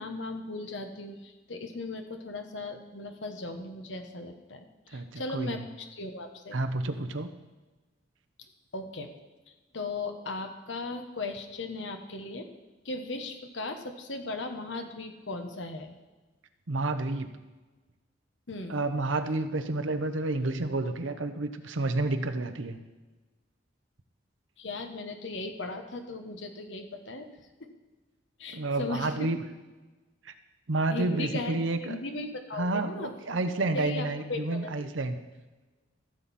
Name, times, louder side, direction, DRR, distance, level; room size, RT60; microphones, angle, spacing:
voice 1, 0.0-6.6 8.7-9.1 9.7-12.5 12.8-15.9 18.5-18.8 24.6-27.3 27.6-27.7 28.4-29.3 30.9-33.4 33.7-34.9, left 2 dB, 75° left, 6 dB, 1.2 m, -37 dB
voice 2, 4.9-5.6 6.5-7.3 16.7-17.3 18.7-22.8 28.5-29.4 30.2-30.3 30.7-32.0 32.5-35.2, right 2 dB, 85° right, 9 dB, 0.9 m, -30 dB
14.5 x 7.6 x 4.3 m, 1.2 s
head